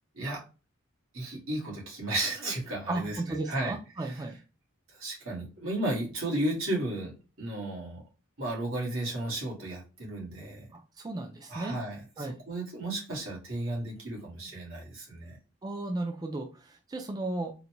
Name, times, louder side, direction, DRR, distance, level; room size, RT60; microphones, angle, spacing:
voice 1, 1.1-3.2 3.5-3.7 4.0-4.1 5.0-7.1 7.4-8.0 8.4-10.7 11.5-15.4, right 1 dB, 85° right, -3 dB, 1.6 m, -34 dB
voice 2, 2.9-4.4 10.7-11.8 12.2-12.4 15.6-17.5, right 2 dB, 20° right, 3 dB, 0.3 m, -35 dB
3.8 x 2.2 x 2.8 m, 0.32 s
head